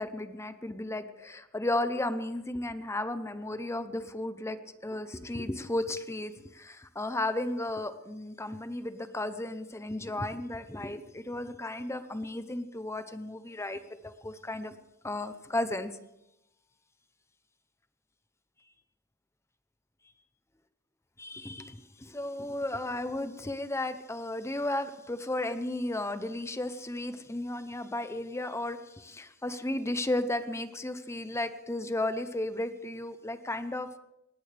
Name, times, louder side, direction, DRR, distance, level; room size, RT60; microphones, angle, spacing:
voice 1, 0.0-14.7 15.0-15.9 21.2-33.9, left 1 dB, 15° left, 11 dB, 0.7 m, -34 dB
19.5 x 16.5 x 3.4 m, 0.91 s
head